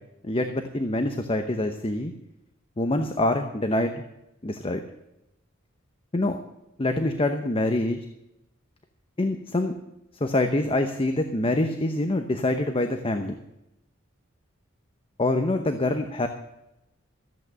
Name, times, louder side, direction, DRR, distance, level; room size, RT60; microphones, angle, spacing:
voice 1, 0.2-2.1 2.8-4.0 4.4-4.8 6.1-6.4 6.8-8.0 9.2-9.7 10.2-13.4 15.2-16.3, left 2 dB, 25° left, 7 dB, 0.8 m, -25 dB
14.0 x 8.5 x 6.6 m, 0.90 s
head